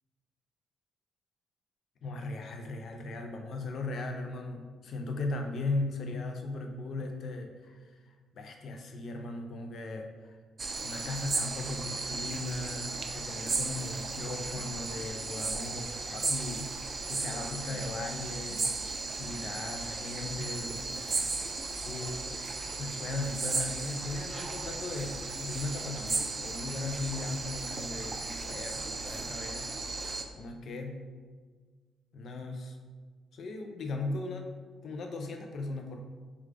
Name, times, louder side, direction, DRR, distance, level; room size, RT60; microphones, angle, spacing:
voice 1, 2.0-10.4 10.8-16.8 17.0-21.5 21.8-22.4 22.8-29.7 30.3-31.1 32.1-32.8 33.3-34.6 34.8-36.0, left 2 dB, 60° left, 4 dB, 0.4 m, -38 dB
sound 1, 10.6-30.2, right 3 dB, 35° right, 0.4 m, -35 dB
4.8 x 2.3 x 3.3 m, 1.5 s
cardioid pair, 90°, 0 cm